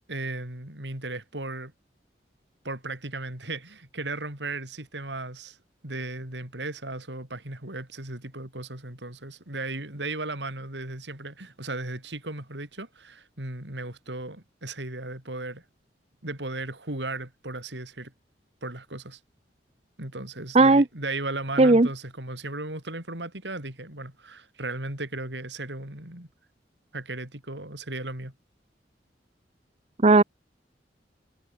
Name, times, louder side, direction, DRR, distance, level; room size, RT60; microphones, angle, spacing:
voice 1, 0.1-1.7 2.6-5.6 5.8-15.6 16.2-18.1 18.6-19.2 20.0-26.3 26.9-28.3, right 2 dB, 80° right, 5.7 m, -36 dB
voice 2, 20.5-20.8 21.6-21.9 30.0-30.2, right 2 dB, 35° right, 0.9 m, -16 dB
head